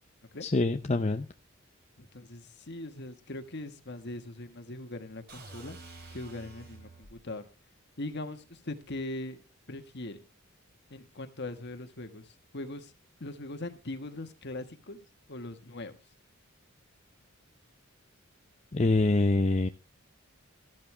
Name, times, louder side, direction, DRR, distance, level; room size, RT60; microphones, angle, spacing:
voice 1, 0.4-1.3 18.7-19.7, left 2 dB, 30° left, 7 dB, 0.6 m, -25 dB
voice 2, 2.0-5.8 6.1-7.5 8.0-9.4 9.7-10.2 10.9-12.9 13.2-15.9, left 2 dB, 55° left, 8 dB, 1.6 m, -41 dB
sound 1, 5.3-7.2, right 3 dB, 50° right, 3.9 m, -48 dB
14.0 x 12.5 x 3.4 m, 0.29 s
head